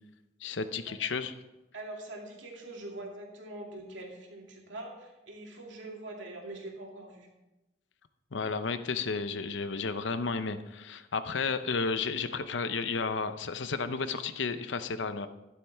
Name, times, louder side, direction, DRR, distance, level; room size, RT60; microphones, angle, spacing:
voice 1, 0.4-1.3 8.3-15.3, left 4 dB, 85° left, 11 dB, 0.7 m, -32 dB
voice 2, 1.7-7.3, right 2 dB, 90° right, 0 dB, 2.6 m, -43 dB
12.5 x 11.5 x 3.5 m, 1.0 s
head